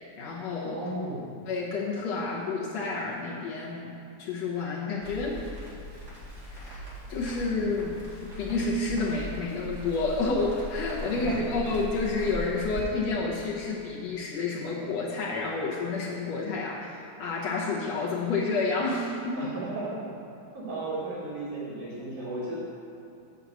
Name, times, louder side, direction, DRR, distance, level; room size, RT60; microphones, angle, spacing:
voice 1, 0.2-0.8 1.5-5.4 6.5-6.8 7.1-19.5, left 3 dB, 65° left, -4 dB, 2.0 m, -30 dB
voice 2, 0.7-1.3 11.1-11.5 19.4-20.1 20.5-22.6, right 2 dB, 70° right, -8 dB, 3.9 m, -35 dB
Crackle, 5.0-12.8, equal, 35° right, 2.3 m, -40 dB
7.6 x 5.5 x 7.0 m, 2.8 s
omnidirectional pair, 3.6 m